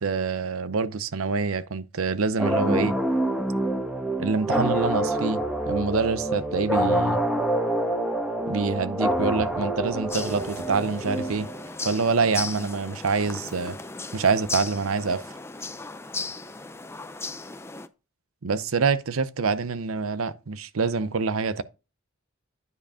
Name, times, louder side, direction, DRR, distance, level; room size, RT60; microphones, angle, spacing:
voice 1, 0.0-2.9 4.2-7.2 8.5-11.5 11.8-13.8 14.1-15.2 18.4-21.6, right 4 dB, 80° right, 0.7 m, -26 dB
sound 1, 2.4-11.8, right 1 dB, 5° right, 1.3 m, -26 dB
sound 2, 10.1-17.9, left 3 dB, 10° left, 0.6 m, -36 dB
9.6 x 5.1 x 4.9 m
head